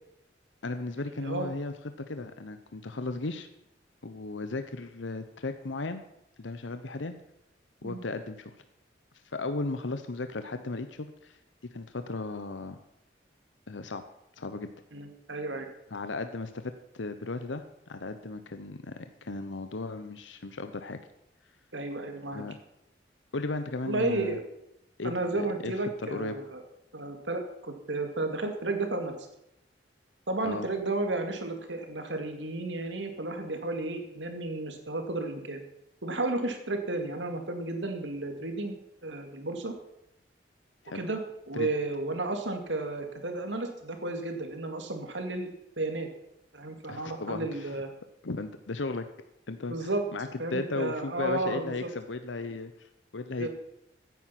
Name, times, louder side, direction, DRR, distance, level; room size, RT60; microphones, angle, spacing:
voice 1, 0.6-1.7 2.1-3.5 4.0-6.0 6.4-7.2 7.8-8.5 9.3-11.4 11.7-12.8 13.7-14.0 14.4-14.7 15.9-21.0 22.3-22.6 23.3-24.4 25.0-25.7 26.1-26.4 30.4-30.7 40.8-41.0 41.5-41.7 46.9-47.8 48.2-49.1 49.5-53.5, left 3 dB, 85° left, 9 dB, 0.9 m, -36 dB
voice 2, 14.9-15.7 21.7-22.4 23.9-24.4 25.0-26.6 26.9-29.3 30.3-35.6 36.0-39.7 40.9-41.2 41.5-45.5 45.8-46.1 46.5-47.9 49.7-50.0 50.4-51.9 53.4-53.5, right 2 dB, 80° right, 5 dB, 2.3 m, -32 dB
15.5 x 9.4 x 5.9 m, 0.81 s
head